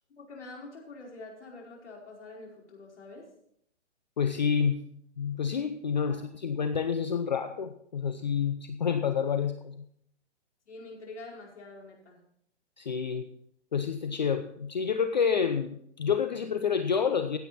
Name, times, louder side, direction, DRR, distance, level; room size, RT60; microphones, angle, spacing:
voice 1, 0.2-3.3 6.0-6.2 10.7-12.2, left 2 dB, 70° left, -1 dB, 4.9 m, -46 dB
voice 2, 4.2-4.9 5.2-9.9 12.8-13.3 13.7-17.4, left 6 dB, 40° left, 9 dB, 0.6 m, -28 dB
16.0 x 8.1 x 4.2 m, 0.71 s
hypercardioid pair, 175°, 36 cm